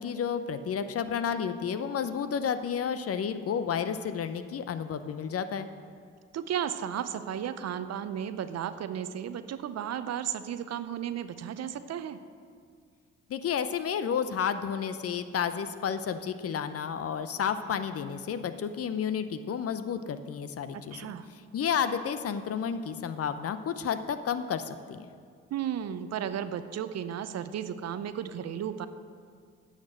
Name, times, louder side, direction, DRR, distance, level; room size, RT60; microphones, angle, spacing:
voice 1, 0.0-5.7 13.3-21.1 21.5-25.1, left 7 dB, 45° left, 11 dB, 0.7 m, -31 dB
voice 2, 6.3-12.2 20.7-21.3 25.5-28.9, right 9 dB, 50° right, 12 dB, 0.7 m, -34 dB
9.3 x 6.6 x 7.6 m, 2.2 s
hypercardioid pair, 50°, 32 cm